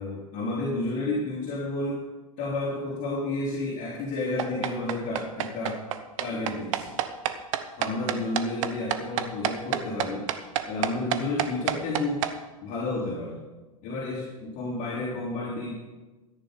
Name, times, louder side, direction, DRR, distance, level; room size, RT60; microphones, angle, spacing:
voice 1, 0.0-2.0 2.4-5.8 6.2-6.9 7.8-10.3 10.7-12.2 12.6-13.4 13.8-15.7, left 2 dB, 45° left, -6 dB, 3.5 m, -31 dB
sound 1, 4.4-12.3, right 12 dB, 60° right, 1.0 m, -28 dB
13.5 x 10.0 x 5.3 m, 1.2 s
figure-of-eight pair, 90°, 19 cm